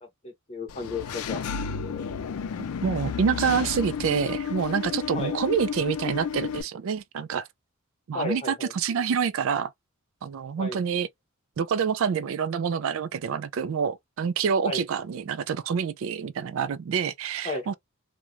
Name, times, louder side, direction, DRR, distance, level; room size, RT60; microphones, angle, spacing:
voice 1, 0.0-1.4 5.1-5.4 8.1-8.7 10.6-10.8 14.6-14.8 17.4-17.7, left 3 dB, 25° left, 0.8 m, -33 dB
Engine / Mechanisms, 0.7-6.6, left 6 dB, 75° left, 0.4 m, -32 dB
voice 2, 2.6-7.5 8.1-9.7 10.2-11.1 11.6-17.7, right 6 dB, 60° right, 0.3 m, -27 dB
3.0 x 2.2 x 2.4 m
head